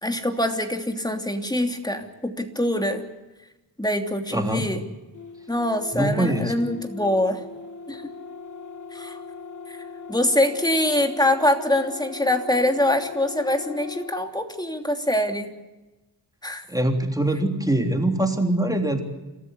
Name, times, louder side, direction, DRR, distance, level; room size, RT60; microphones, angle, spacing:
voice 1, 0.0-3.0 3.8-4.8 5.5-7.4 7.9-8.0 8.9-9.2 9.7-9.8 10.1-15.5 16.4-16.6, left 1 dB, 10° left, 5 dB, 3.0 m, -24 dB
voice 2, 4.3-4.7 5.9-6.5 16.7-19.0, right 1 dB, 10° right, 3 dB, 3.4 m, -23 dB
sound 1, 5.1-14.2, left 5 dB, 45° left, 1.3 m, -39 dB
30.0 x 14.0 x 8.2 m, 1.1 s
cardioid pair, 70°, 41 cm